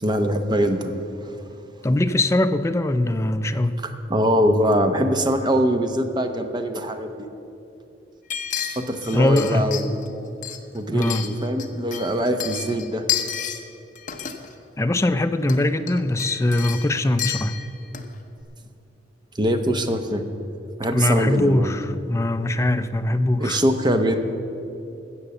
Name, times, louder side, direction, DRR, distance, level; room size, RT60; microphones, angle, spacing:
voice 1, 0.0-1.3 4.1-7.1 8.8-10.4 10.7-13.0 19.3-20.2 20.8-21.7 23.4-24.2, equal, 25° right, 7 dB, 0.8 m, -23 dB
voice 2, 1.8-3.8 9.1-9.7 10.9-11.3 14.8-17.6 20.9-23.6, left 1 dB, 15° left, 10 dB, 0.4 m, -21 dB
sound 1, 8.3-10.1 10.4-11.7 11.9-13.6 13.9-14.5 15.4-15.6 15.9-18.2 18.4-18.5, left 9 dB, 45° left, 0.9 m, -30 dB
13.5 x 8.0 x 7.0 m, 2.8 s
head